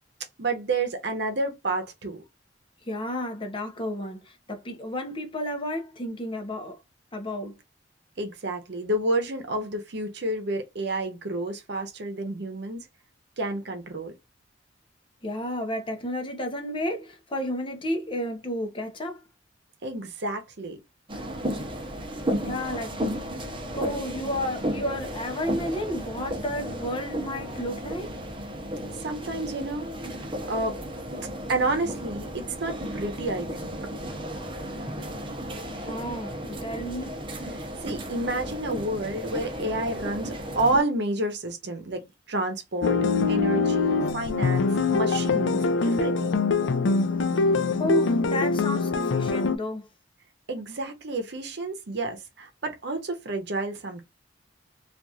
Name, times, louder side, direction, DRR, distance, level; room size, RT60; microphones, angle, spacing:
voice 1, 0.4-2.2 8.2-12.9 13.4-14.1 19.8-20.8 29.0-29.9 30.5-30.8 31.5-33.8 37.5-43.0 43.3-46.4 50.5-54.0, right 2 dB, 65° right, 0.8 m, -30 dB
voice 2, 2.9-6.8 7.1-7.5 15.2-19.2 22.4-23.2 23.7-28.1 35.7-37.2 47.4-47.5 47.8-49.9, left 1 dB, 30° left, 0.7 m, -32 dB
sound 1, 21.1-40.8, equal, 30° right, 0.7 m, -34 dB
sound 2, 42.8-49.6, left 4 dB, 85° left, 0.4 m, -23 dB
2.9 x 2.5 x 2.3 m
head